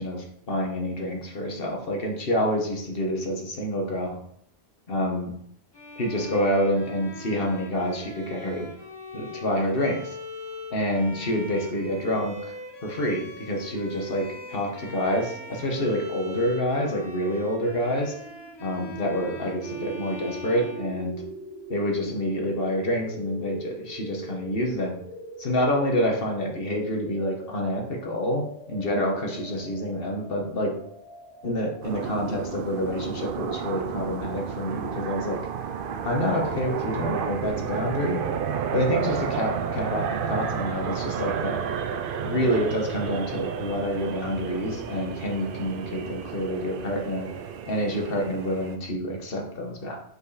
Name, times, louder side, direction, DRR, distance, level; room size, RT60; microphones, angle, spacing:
voice 1, 0.0-4.2 4.9-5.3 6.0-8.7 9.1-10.2 10.7-12.5 12.8-18.1 18.6-21.2 21.7-25.0 25.4-30.7 31.4-35.4 36.0-38.2 38.7-41.6 42.2-47.3 47.7-50.0, equal, 60° left, 1 dB, 1.5 m, -27 dB
Bowed string instrument, 5.7-21.6, left 2 dB, 25° left, 0.8 m, -41 dB
sound 1, 14.3-32.2, right 1 dB, ahead, 1.4 m, -43 dB
sound 2, 31.8-48.8, right 7 dB, 60° right, 0.7 m, -32 dB
5.5 x 4.8 x 4.1 m, 0.68 s
omnidirectional pair, 1.1 m